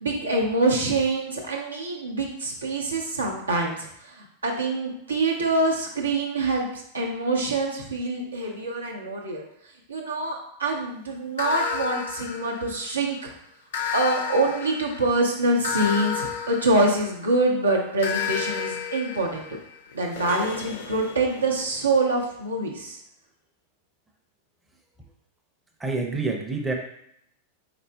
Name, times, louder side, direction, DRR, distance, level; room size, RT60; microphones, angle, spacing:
voice 1, 0.0-9.4 9.9-13.3 13.9-19.5 19.9-23.0, right 2 dB, 75° right, -1 dB, 0.7 m, -25 dB
sound 1, 11.4-13.1 13.7-17.4 18.0-21.7, left 6 dB, 60° left, 0.5 m, -32 dB
voice 2, 25.8-26.7, right 3 dB, 10° right, 0 dB, 0.6 m, -27 dB
4.1 x 3.9 x 2.2 m, 0.73 s
figure-of-eight pair, 90°, 0 cm